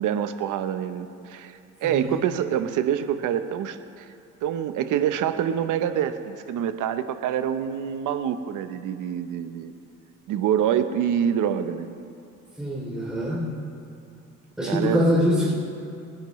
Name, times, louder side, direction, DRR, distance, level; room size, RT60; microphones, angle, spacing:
voice 1, 0.0-4.1 4.4-9.7 10.3-12.0 14.7-15.0, right 9 dB, 85° right, 10 dB, 0.8 m, -26 dB
voice 2, 1.8-2.2 12.6-13.5 14.6-15.5, equal, 5° right, -6 dB, 2.9 m, -24 dB
29.5 x 10.5 x 3.1 m, 2.5 s
cardioid pair, 90°, 30 cm